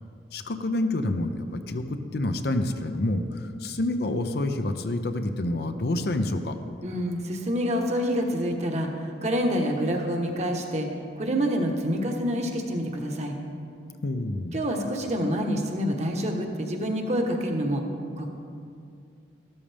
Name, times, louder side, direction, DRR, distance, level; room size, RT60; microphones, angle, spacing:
voice 1, 0.3-6.5 14.0-14.6, left 1 dB, 65° left, 7 dB, 0.7 m, -28 dB
voice 2, 6.8-10.9 11.2-13.4 14.5-17.8 18.2-18.3, equal, 40° right, 2 dB, 1.2 m, -27 dB
13.5 x 12.5 x 3.5 m, 2.4 s
head